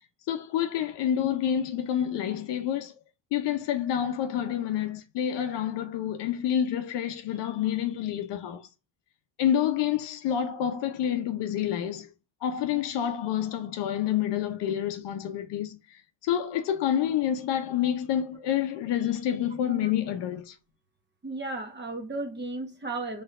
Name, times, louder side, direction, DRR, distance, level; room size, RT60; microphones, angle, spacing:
voice 1, 0.3-2.9 3.3-8.6 9.4-12.1 12.4-15.8 16.2-20.5, left 10 dB, 60° left, 0.8 m, -28 dB
voice 2, 21.2-23.2, right 2 dB, 20° right, 1.1 m, -34 dB
4.5 x 3.3 x 2.5 m
supercardioid pair, 80°, 48 cm